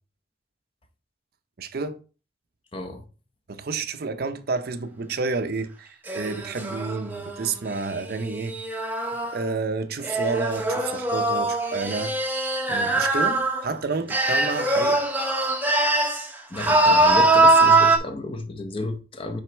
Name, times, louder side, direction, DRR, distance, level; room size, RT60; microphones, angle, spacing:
voice 1, 1.6-2.0 3.5-8.6 9.3-12.2 12.7-15.0, right 4 dB, 55° right, 0.6 m, -30 dB
voice 2, 2.7-3.0 16.5-19.4, left 2 dB, 30° left, 0.7 m, -32 dB
sound 1, 6.1-9.4 10.0-13.7 14.1-16.3 16.5-18.0, right 2 dB, 10° right, 0.7 m, -22 dB
6.0 x 5.1 x 3.3 m
head